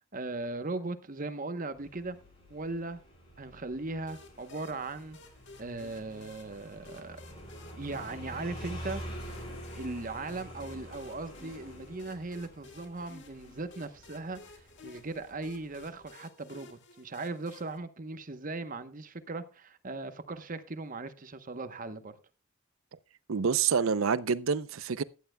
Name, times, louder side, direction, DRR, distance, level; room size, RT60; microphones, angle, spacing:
voice 1, 0.1-2.2 2.5-3.0 3.4-5.2 5.6-7.2 7.8-9.0 9.7-14.4 14.8-22.2, right 3 dB, 40° right, 1.0 m, -38 dB
Motorcycle, 1.7-16.1, equal, 30° left, 7.6 m, -47 dB
sound 1, 4.1-17.8, left 3 dB, 60° left, 2.0 m, -55 dB
voice 2, 23.3-25.0, right 6 dB, 75° right, 0.6 m, -27 dB
15.5 x 11.5 x 2.3 m
head